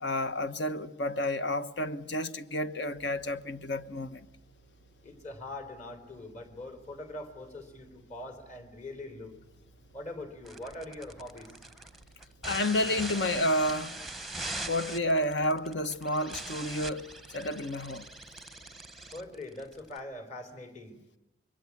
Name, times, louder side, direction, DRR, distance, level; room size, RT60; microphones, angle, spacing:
voice 1, 0.0-4.3 12.4-14.0 14.7-18.1, left 1 dB, 65° left, 1.2 m, -30 dB
sound 1, 2.9-19.3, right 2 dB, 80° left, 5.4 m, -61 dB
voice 2, 5.0-9.3 9.9-11.5 19.1-21.0, left 1 dB, 40° left, 3.8 m, -42 dB
sound 2, 10.4-20.0, right 2 dB, ahead, 1.0 m, -41 dB
26.0 x 23.0 x 8.7 m
head